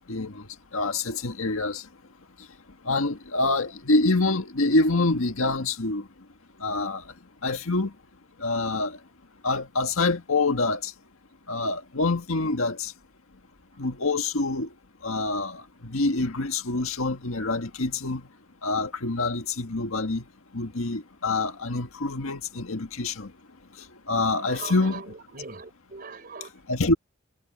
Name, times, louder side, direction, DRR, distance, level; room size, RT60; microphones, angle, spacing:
voice 1, 0.1-0.4 0.7-1.8 2.9-6.0 6.6-7.0 7.4-7.9 8.4-9.0 9.4-10.9 11.5-12.9 13.8-14.7 15.0-18.2 18.6-20.2 20.5-23.3 24.1-25.0 26.7-26.9, left 3 dB, 85° left, 1.8 m, -26 dB
voice 2, 24.5-26.5, right 4 dB, 45° right, 4.4 m, -40 dB
head